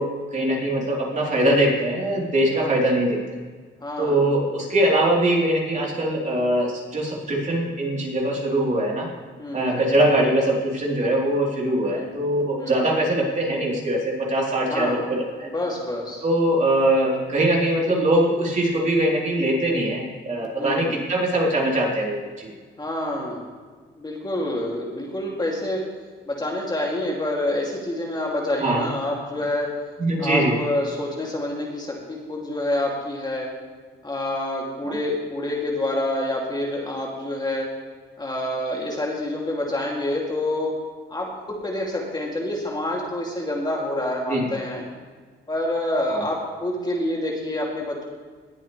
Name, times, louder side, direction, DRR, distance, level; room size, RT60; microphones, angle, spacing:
voice 1, 0.0-3.2 4.0-9.1 9.5-15.5 16.2-22.5 28.6-28.8 30.0-30.5 34.9-35.0 44.3-44.4 46.1-46.2, right 1 dB, 35° right, -3 dB, 3.9 m, -22 dB
voice 2, 3.8-4.2 9.4-9.8 11.8-12.1 12.6-12.8 14.7-15.1 15.5-16.2 20.6-21.0 22.8-23.5 24.0-25.9 26.2-29.7 30.2-33.5 34.0-37.7 38.2-40.8 41.1-44.8 45.5-48.0, left 1 dB, 20° left, -2 dB, 2.9 m, -27 dB
20.0 x 8.5 x 3.4 m, 1.5 s
cardioid pair, 90°, 20 cm